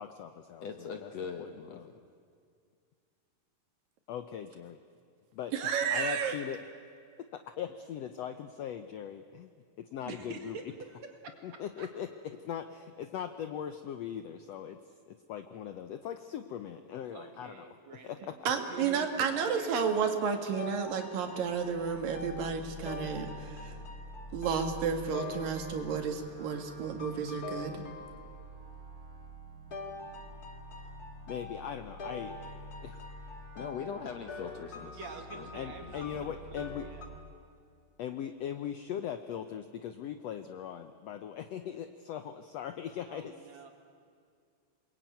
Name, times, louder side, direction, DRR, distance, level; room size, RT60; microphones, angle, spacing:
voice 1, 0.0-1.1 1.4-1.9 4.1-4.8 5.3-6.6 7.2-9.5 9.8-10.6 11.4-14.8 15.1-17.7 18.0-18.5 31.3-33.0 35.5-36.9 38.0-43.5, left 9 dB, 90° left, 9 dB, 1.4 m, -40 dB
voice 2, 0.6-1.8 33.5-35.5 35.8-36.0, left 6 dB, 65° left, 6 dB, 1.7 m, -41 dB
voice 3, 5.5-6.4 18.5-23.8 24.3-27.8, right 6 dB, 75° right, 5 dB, 3.6 m, -32 dB
voice 4, 10.1-10.6 11.0-11.5 11.8-11.9 17.1-19.7 34.9-37.0 43.1-43.7, right 4 dB, 55° right, 4 dB, 3.1 m, -47 dB
sound 1, 20.6-26.3 27.0-28.6 29.7-37.1, left 3 dB, 30° left, 2.0 m, -45 dB
sound 2, 21.3-37.2, equal, 30° right, 3.1 m, -48 dB
28.0 x 21.0 x 9.3 m, 2.3 s
omnidirectional pair, 4.0 m